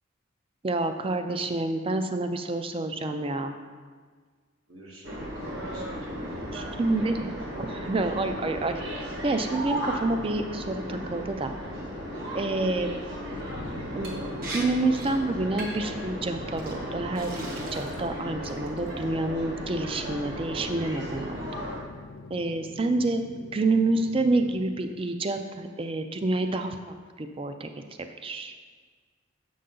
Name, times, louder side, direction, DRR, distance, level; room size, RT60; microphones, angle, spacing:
voice 1, 0.6-3.5 6.5-7.3 7.6-11.5 12.3-12.9 13.9-14.1 14.5-21.4 22.3-23.2 23.5-27.7 28.2-28.5, right 2 dB, 25° right, 7 dB, 0.4 m, -28 dB
voice 2, 4.7-6.6 12.9-14.0 22.9-23.1, equal, 85° right, -4 dB, 1.8 m, -48 dB
sound 1, 5.0-21.8, equal, 60° right, 1.5 m, -35 dB
sound 2, 5.6-25.0, left 4 dB, 60° left, 0.3 m, -47 dB
Liquid, 14.0-14.2 14.4-14.6 14.9-15.2 15.6-15.9 16.6-16.7 17.2-18.1 18.4-18.9, right 2 dB, 45° right, 1.0 m, -39 dB
7.6 x 5.5 x 3.8 m, 1.5 s
head